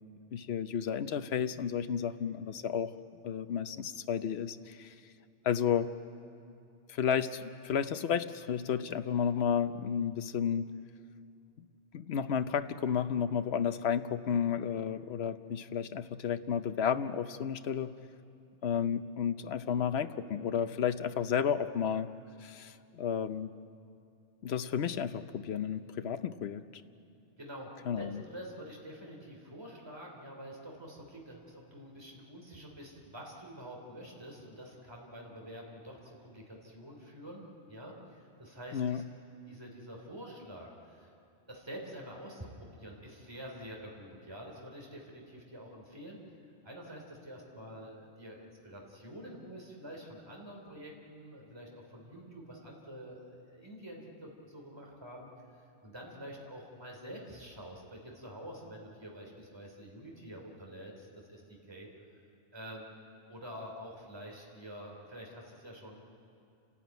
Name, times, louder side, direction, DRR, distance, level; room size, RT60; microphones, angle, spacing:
voice 1, 0.3-2.9 3.2-4.9 5.4-5.9 6.9-10.7 11.9-17.9 18.6-22.1 22.4-23.5 24.4-26.8 27.9-28.2 38.7-39.0, left 8 dB, 70° left, 11 dB, 1.0 m, -32 dB
voice 2, 27.4-37.4 37.7-39.0 39.5-41.1 41.5-46.2 46.6-55.3 55.8-61.9 62.5-62.9 63.3-66.0, equal, 20° right, -1 dB, 3.3 m, -47 dB
29.5 x 13.5 x 9.3 m, 2.5 s
omnidirectional pair, 1.1 m